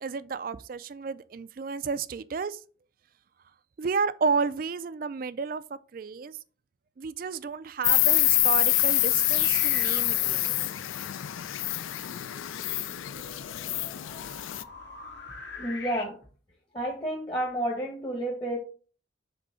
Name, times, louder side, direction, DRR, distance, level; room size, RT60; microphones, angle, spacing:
voice 1, 0.0-2.6 3.8-6.4 7.0-10.4, right 5 dB, 45° right, 0.3 m, -31 dB
Insect, 7.8-14.6, left 16 dB, 85° left, 0.4 m, -26 dB
sound 1, 8.6-16.0, left 4 dB, 60° left, 1.3 m, -44 dB
voice 2, 15.6-16.2 16.7-18.6, right 1 dB, 25° left, 1.0 m, -30 dB
5.3 x 3.5 x 5.5 m
head